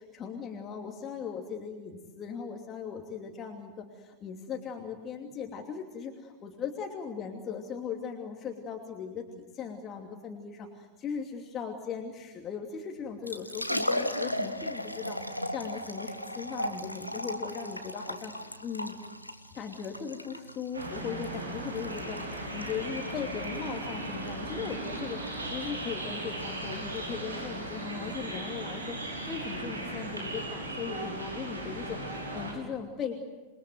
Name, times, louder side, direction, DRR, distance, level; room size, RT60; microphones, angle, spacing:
voice 1, 0.1-18.9 19.5-33.2, left 6 dB, 30° left, 2 dB, 2.8 m, -38 dB
Liquid, 13.1-30.4, left 1 dB, 90° left, 1.5 m, -38 dB
sound 1, 20.7-32.5, right 1 dB, 80° right, 6.0 m, -37 dB
28.5 x 22.0 x 8.0 m, 1.2 s
figure-of-eight pair, 90°, 0 cm